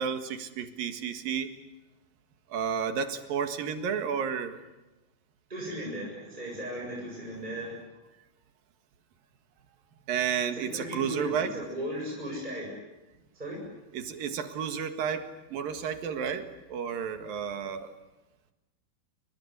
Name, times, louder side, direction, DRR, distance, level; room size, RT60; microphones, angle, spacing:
voice 1, 0.0-1.5 2.5-4.6 10.1-11.5 13.9-17.9, right 7 dB, 70° right, 8 dB, 3.5 m, -31 dB
voice 2, 5.5-7.7 10.7-12.7 13.4-13.6, equal, 10° right, -2 dB, 7.6 m, -36 dB
28.5 x 24.5 x 8.2 m, 1.0 s
omnidirectional pair, 4.2 m